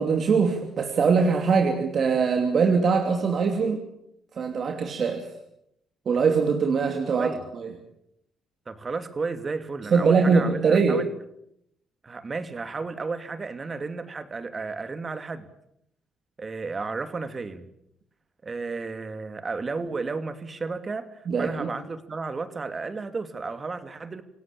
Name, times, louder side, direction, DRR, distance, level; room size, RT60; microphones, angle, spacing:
voice 1, 0.0-3.8 4.4-5.3 6.1-7.3 7.6-7.7 9.9-11.0 21.3-21.7, right 5 dB, 55° right, 4 dB, 2.9 m, -22 dB
voice 2, 8.7-11.1 12.0-15.5 16.4-17.6 18.4-24.2, right 4 dB, 35° right, 10 dB, 2.5 m, -33 dB
27.0 x 17.0 x 8.6 m, 0.77 s
cardioid pair, 90°, 0 cm